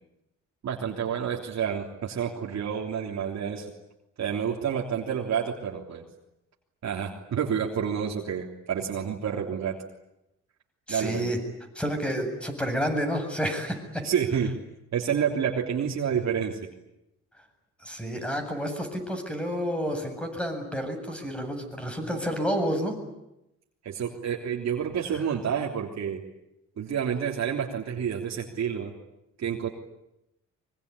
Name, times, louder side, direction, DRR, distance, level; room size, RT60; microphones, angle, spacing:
voice 1, 0.6-3.7 4.2-6.0 6.8-9.8 10.9-11.2 14.0-14.5 14.9-16.6 23.8-26.2 26.8-28.9 29.4-29.7, right 8 dB, 60° right, 0 dB, 3.4 m, -29 dB
voice 2, 10.9-11.4 11.7-14.1 17.8-23.0, equal, 5° left, 5 dB, 7.8 m, -30 dB
24.5 x 23.5 x 9.9 m, 0.87 s
cardioid pair, 90°, 30 cm